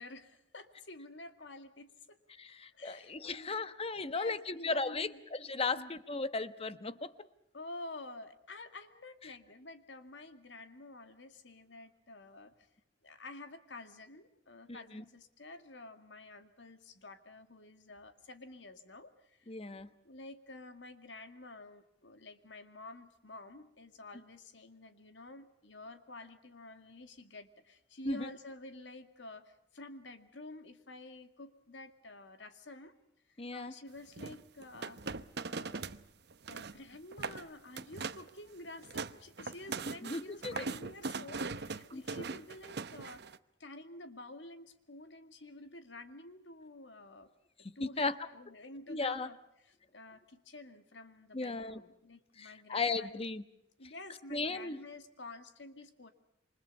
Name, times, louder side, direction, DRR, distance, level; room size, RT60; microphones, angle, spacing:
voice 1, 0.0-2.2 2.7-5.2 5.7-5.9 7.5-12.7 13.0-19.5 20.0-32.9 33.3-35.2 35.5-36.0 36.5-43.3 43.6-47.3 47.8-53.2 53.8-56.1, left 2 dB, 75° left, 8 dB, 2.3 m, -50 dB
voice 2, 2.4-7.1 14.9-15.0 19.5-19.9 28.1-28.3 33.4-33.7 40.0-40.6 41.9-42.0 47.8-48.1 48.9-49.3 51.3-51.8 52.4-53.4 54.3-54.8, left 3 dB, 35° left, 13 dB, 1.2 m, -36 dB
sound 1, 34.2-36.0 36.3-36.8 37.1-37.4 37.8-38.3 38.7-43.4, right 4 dB, 65° right, 0.9 m, -40 dB
28.0 x 25.0 x 5.5 m, 0.80 s
head